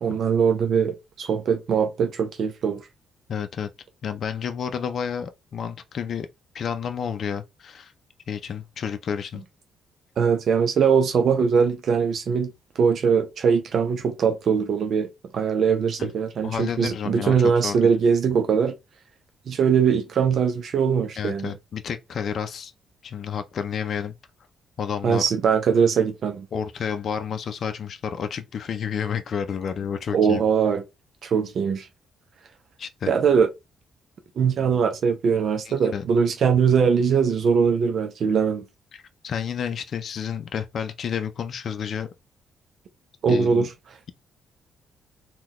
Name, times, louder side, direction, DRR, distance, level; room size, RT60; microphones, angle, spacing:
voice 1, 0.0-2.8 10.2-15.1 15.3-18.7 19.5-21.5 25.0-26.5 30.1-30.8 31.2-31.9 33.1-33.5 34.4-38.6 43.2-43.7, right 6 dB, 60° right, 0.5 m, -21 dB
voice 2, 3.3-3.7 4.0-6.3 6.5-7.9 8.3-9.4 16.0-16.1 16.4-17.9 21.2-22.7 23.0-24.1 24.8-25.2 26.5-30.4 32.8-33.1 35.7-36.0 39.2-42.1 43.3-43.7, left 7 dB, 60° left, 0.5 m, -30 dB
3.8 x 2.3 x 3.0 m
cardioid pair, 90°, 0 cm